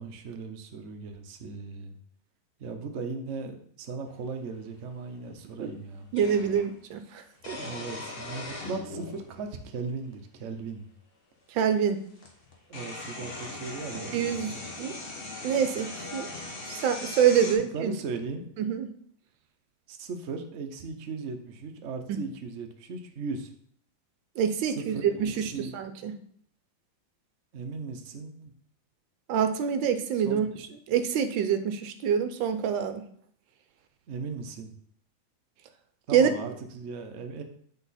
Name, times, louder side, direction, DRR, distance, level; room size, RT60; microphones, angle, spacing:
voice 1, 0.0-2.0 2.6-6.1 7.6-10.9 12.1-12.2 12.7-14.2 14.5-14.6 17.4-18.5 19.9-23.5 24.6-25.9 27.5-28.5 30.1-30.5 34.1-34.7 36.1-37.4, right 4 dB, 60° right, 5 dB, 0.8 m, -37 dB
sound 1, 4.5-4.6 6.2-6.7 7.4-9.2 10.2-10.3 11.7-11.8 12.2-17.5, left 2 dB, 35° left, 1.2 m, -39 dB
voice 2, 6.1-7.6 11.5-12.0 14.1-14.5 14.8-14.9 15.4-16.3 16.7-17.9 18.6-18.9 22.1-22.2 24.4-26.1 29.3-33.0 36.1-36.3, right 8 dB, 75° right, 9 dB, 1.3 m, -26 dB
8.1 x 4.1 x 4.1 m, 0.63 s
omnidirectional pair, 2.2 m